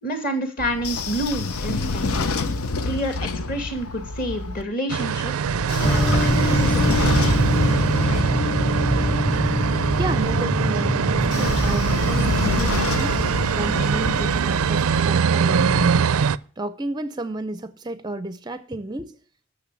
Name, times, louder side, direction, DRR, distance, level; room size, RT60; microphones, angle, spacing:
voice 1, 0.0-2.3 2.9-5.3 5.8-7.4, equal, 40° left, 2.3 m, -29 dB
Train / Sliding door, 0.6-4.6 5.4-10.3 11.1-15.0, left 3 dB, 85° left, 0.8 m, -28 dB
sound 1, 4.9-16.4, right 6 dB, 80° right, 0.4 m, -23 dB
sound 2, 5.8-12.4, equal, 15° left, 0.7 m, -23 dB
voice 2, 10.0-13.2 13.5-16.1 16.6-19.2, right 2 dB, 20° right, 0.5 m, -32 dB
12.5 x 6.7 x 6.9 m
head